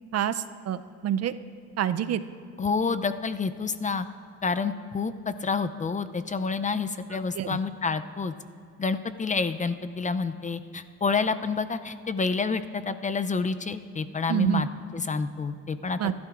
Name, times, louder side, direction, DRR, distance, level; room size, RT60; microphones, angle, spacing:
voice 1, 0.1-1.3 1.8-2.2 7.1-7.6 14.3-14.6 16.0-16.1, right 10 dB, 55° right, 13 dB, 0.5 m, -27 dB
voice 2, 2.6-4.1 4.4-8.3 8.8-14.7 14.9-16.0, left 4 dB, 25° left, 11 dB, 0.5 m, -28 dB
21.0 x 12.0 x 2.5 m, 2.4 s
cardioid pair, 90°, 30 cm